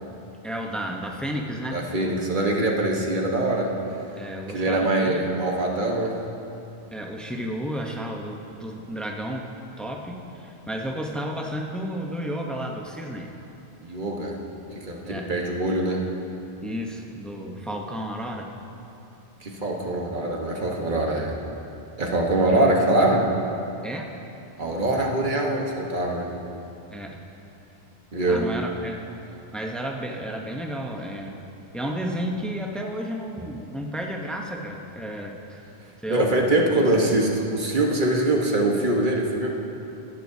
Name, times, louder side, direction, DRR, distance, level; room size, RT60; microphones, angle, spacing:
voice 1, 0.4-1.8 4.1-5.3 6.9-9.5 9.8-13.3 15.0-15.3 16.6-18.5 22.5-22.7 23.8-24.2 24.6-24.8 26.9-27.2 28.3-31.4 31.7-35.6 36.0-36.6, equal, ahead, 1 dB, 0.7 m, -32 dB
voice 2, 1.7-3.7 4.5-6.2 13.8-14.4 14.7-16.0 19.4-21.4 22.0-23.3 24.6-26.3 28.1-28.4 36.1-39.5, right 2 dB, 50° right, 0 dB, 1.3 m, -23 dB
18.0 x 11.0 x 2.7 m, 2.8 s
omnidirectional pair, 1.1 m